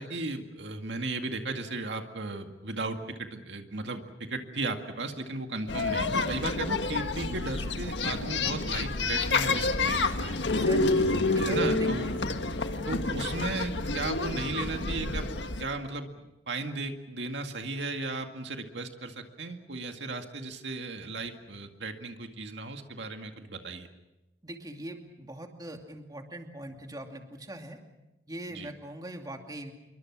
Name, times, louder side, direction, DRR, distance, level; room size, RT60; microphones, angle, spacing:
voice 1, 0.0-10.4 11.4-12.1 12.9-15.3 15.6-16.1 16.5-23.9 28.5-28.7, right 3 dB, 75° right, 5 dB, 2.1 m, -35 dB
sound 1, 5.7-15.6, left 3 dB, 80° left, 1.6 m, -28 dB
voice 2, 10.4-12.2 24.4-27.8 28.3-29.7, right 1 dB, 20° right, 3 dB, 2.5 m, -41 dB
27.5 x 23.5 x 6.2 m, 0.96 s
head